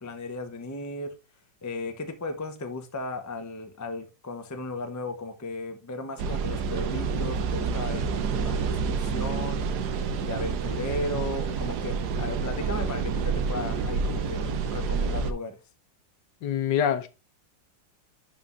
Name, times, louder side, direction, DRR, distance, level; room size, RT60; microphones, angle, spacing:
voice 1, 0.0-1.1 1.6-9.7 10.2-15.6, left 2 dB, 20° left, 0.4 m, -35 dB
sound 1, 6.2-15.3, right 5 dB, 65° right, 1.3 m, -28 dB
voice 2, 16.4-17.1, left 9 dB, 70° left, 1.4 m, -25 dB
11.0 x 5.2 x 2.6 m
omnidirectional pair, 2.0 m